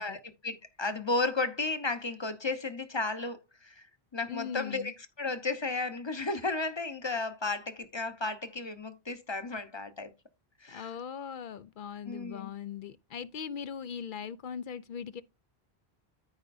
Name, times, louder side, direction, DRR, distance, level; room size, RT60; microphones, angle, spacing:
voice 1, 0.0-3.8 4.1-10.1 10.6-10.9 12.1-12.5, left 3 dB, 25° left, 0.9 m, -34 dB
voice 2, 4.3-4.9 10.7-15.2, left 7 dB, 60° left, 0.6 m, -40 dB
14.0 x 5.0 x 2.6 m
omnidirectional pair, 1.1 m